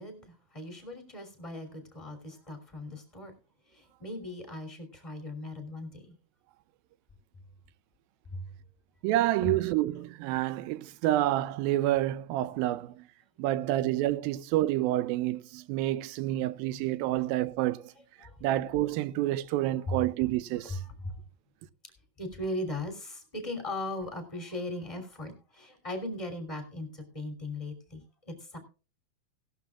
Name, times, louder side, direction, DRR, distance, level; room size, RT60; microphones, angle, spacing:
voice 1, 0.0-3.3 3.7-6.2 8.3-8.5 9.4-9.5 18.2-18.4 19.9-20.0 20.6-21.2 22.2-28.6, left 1 dB, 10° left, 2.7 m, -38 dB
voice 2, 9.0-13.0 13.4-17.9 18.4-20.8, right 15 dB, 85° right, 2.4 m, -28 dB
18.0 x 12.0 x 2.4 m
omnidirectional pair, 4.2 m